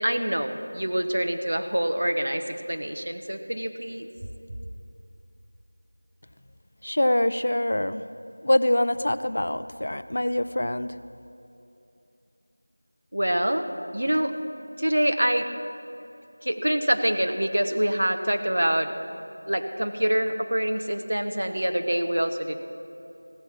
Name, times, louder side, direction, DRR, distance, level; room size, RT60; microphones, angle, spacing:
voice 1, 0.0-4.1 13.1-13.7 13.9-14.3 14.8-15.5 16.4-18.9 19.5-22.6, right 1 dB, 75° right, 6 dB, 1.2 m, -25 dB
voice 2, 6.8-8.0 8.4-10.9, left 1 dB, 50° left, 13 dB, 0.5 m, -24 dB
15.5 x 12.0 x 6.0 m, 2.8 s
figure-of-eight pair, 180°, 0 cm